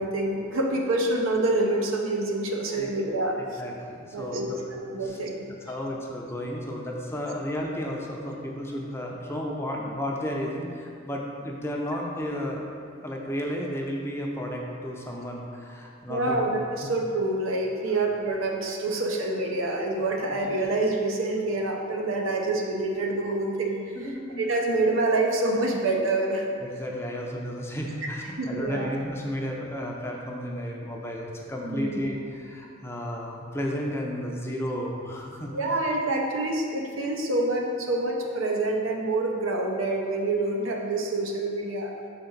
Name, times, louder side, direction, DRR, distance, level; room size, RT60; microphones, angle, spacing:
voice 1, 0.0-3.6 4.1-5.7 16.1-24.1 24.4-26.4 28.4-28.9 31.6-32.1 35.5-41.9, right 2 dB, 90° right, 1 dB, 0.8 m, -27 dB
voice 2, 3.6-4.6 5.0-5.2 5.7-12.6 13.0-16.5 17.9-18.0 20.3-20.4 24.0-24.5 26.6-35.5, equal, 15° left, -1 dB, 0.5 m, -33 dB
6.1 x 4.4 x 3.9 m, 2.3 s
head